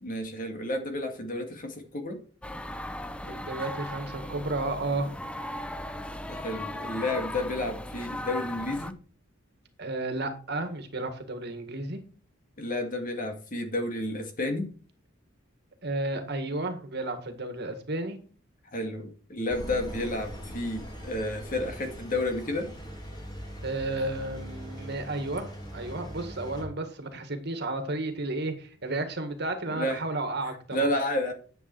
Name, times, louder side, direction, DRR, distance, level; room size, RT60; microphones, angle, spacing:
voice 1, 0.0-2.2 6.3-9.0 12.6-14.7 18.7-22.7 29.7-30.0 30.7-31.3, left 1 dB, 40° left, 4 dB, 2.2 m, -31 dB
sound 1, 2.4-8.9, left 1 dB, 5° left, 0.6 m, -37 dB
voice 2, 3.3-5.1 9.8-12.0 15.8-18.2 23.6-30.9, right 2 dB, 55° right, 7 dB, 1.8 m, -32 dB
Engine, 19.5-26.6, equal, 20° left, 2.9 m, -41 dB
10.5 x 7.9 x 4.6 m, 0.40 s
head